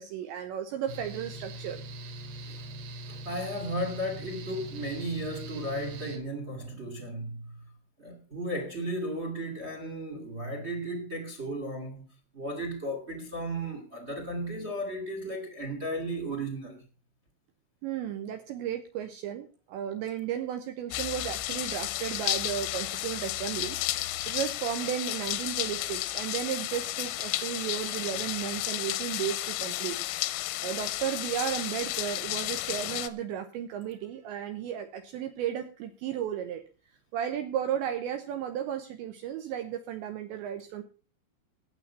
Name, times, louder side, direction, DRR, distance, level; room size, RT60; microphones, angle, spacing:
voice 1, 0.0-1.8 17.8-23.8 24.3-30.0 30.6-36.6 37.1-40.8, right 10 dB, 75° right, 2.9 m, -34 dB
Mechanical fan, 0.9-6.2, right 1 dB, 60° right, 4.1 m, -41 dB
voice 2, 3.1-7.6 8.0-12.0 12.3-16.8, right 1 dB, 40° right, 0.8 m, -35 dB
sound 1, 20.9-33.1, left 16 dB, 85° left, 3.4 m, -33 dB
17.5 x 6.9 x 5.6 m
omnidirectional pair, 5.8 m